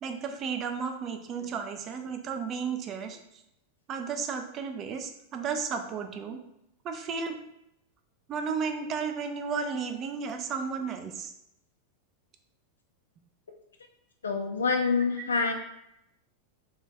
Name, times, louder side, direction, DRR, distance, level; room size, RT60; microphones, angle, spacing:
voice 1, 0.0-3.2 3.9-6.4 6.8-7.4 8.3-11.3, right 5 dB, 30° right, 6 dB, 0.3 m, -33 dB
voice 2, 14.2-15.5, left 4 dB, 70° left, 3 dB, 0.3 m, -26 dB
2.4 x 2.2 x 3.2 m, 0.80 s
figure-of-eight pair, 90°, 0 cm